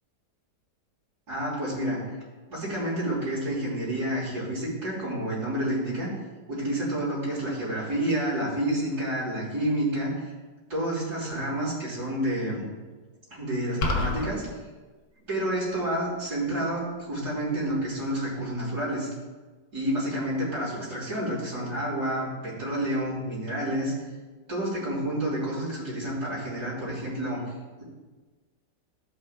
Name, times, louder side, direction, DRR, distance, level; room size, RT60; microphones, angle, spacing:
voice 1, 1.3-2.1 2.5-6.1 6.5-10.1 10.7-12.7 13.3-14.5 15.3-19.1 19.7-23.9 24.5-27.4, right 1 dB, 65° right, -9 dB, 3.5 m, -29 dB
sound 1, 13.8-14.3, left 2 dB, 80° left, 1.7 m, -26 dB
16.0 x 5.7 x 2.2 m, 1.3 s
omnidirectional pair, 1.8 m